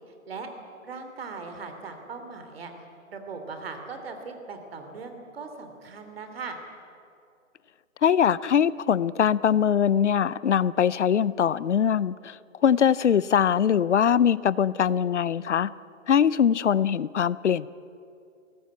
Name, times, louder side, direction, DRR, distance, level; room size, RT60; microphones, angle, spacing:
voice 1, 0.8-2.7 3.1-6.6, right 4 dB, 45° right, 6 dB, 3.0 m, -39 dB
voice 2, 8.0-12.4 12.6-15.7 16.1-17.7, left 8 dB, 60° left, 20 dB, 0.7 m, -22 dB
22.0 x 18.0 x 8.5 m, 2.6 s
hypercardioid pair, 160°, 40 cm